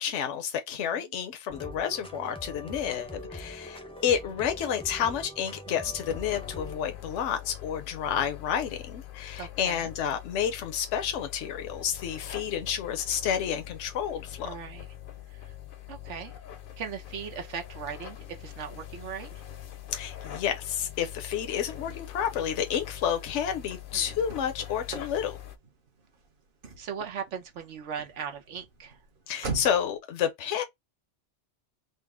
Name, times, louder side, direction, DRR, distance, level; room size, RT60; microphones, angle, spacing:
voice 1, 0.0-14.5 19.9-25.4 29.3-30.6, left 8 dB, 75° left, 1.0 m, -30 dB
voice 2, 0.8-1.1 5.7-5.9 9.4-9.9 14.4-14.9 15.3-15.5 15.9-16.3 16.8-19.4 23.9-24.2 26.8-29.0, right 7 dB, 80° right, 1.2 m, -39 dB
sound 1, 1.5-6.8, left 1 dB, 5° left, 0.5 m, -42 dB
sound 2, 6.1-25.6, left 11 dB, 55° left, 0.7 m, -43 dB
Car / Slam, 21.3-30.0, right 4 dB, 50° right, 1.1 m, -44 dB
4.0 x 2.1 x 3.5 m
omnidirectional pair, 1.2 m